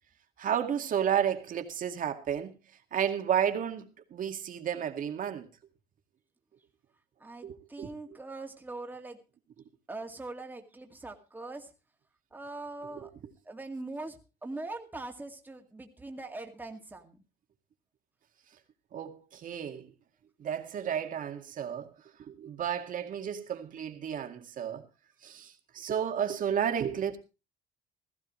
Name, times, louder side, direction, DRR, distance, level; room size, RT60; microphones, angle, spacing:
voice 1, 0.4-2.5 2.9-5.5 7.4-8.2 12.9-13.1 18.9-19.9 20.4-21.9 22.2-24.9 25.2-27.2, right 9 dB, 55° right, 2.1 m, -32 dB
voice 2, 7.2-9.2 9.9-11.7 12.3-13.1 13.5-17.2, right 2 dB, 10° right, 2.1 m, -42 dB
16.5 x 14.5 x 3.1 m
cardioid pair, 110°, 17 cm